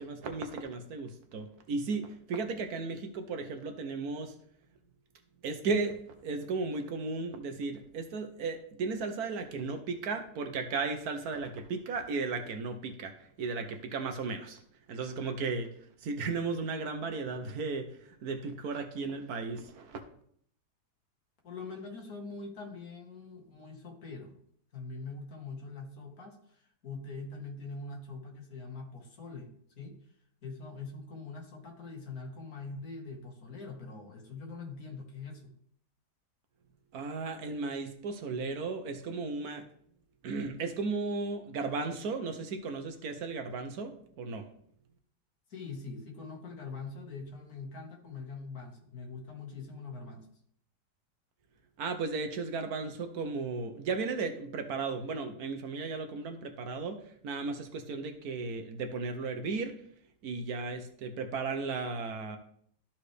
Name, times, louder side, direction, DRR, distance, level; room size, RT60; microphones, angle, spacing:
voice 1, 0.0-4.3 5.4-14.6 14.9-15.7 16.0-20.0 36.9-39.7 40.2-44.5 51.8-59.8 60.2-62.4, right 4 dB, 65° right, 6 dB, 1.3 m, -35 dB
voice 2, 21.4-24.4 24.7-29.9 30.4-35.5 45.5-50.3, left 4 dB, 60° left, 1 dB, 2.0 m, -43 dB
13.0 x 4.4 x 3.3 m, 0.65 s
omnidirectional pair, 1.8 m